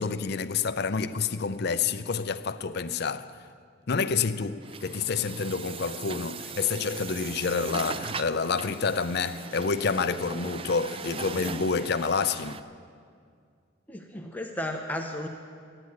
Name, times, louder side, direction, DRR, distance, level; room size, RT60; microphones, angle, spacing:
voice 1, 0.0-3.3 3.9-12.6, left 5 dB, 55° left, 0.5 m, -28 dB
Truck, 4.6-12.6, right 5 dB, 25° right, 0.4 m, -39 dB
voice 2, 13.9-15.3, left 1 dB, 10° left, 0.8 m, -34 dB
13.5 x 9.8 x 9.5 m
head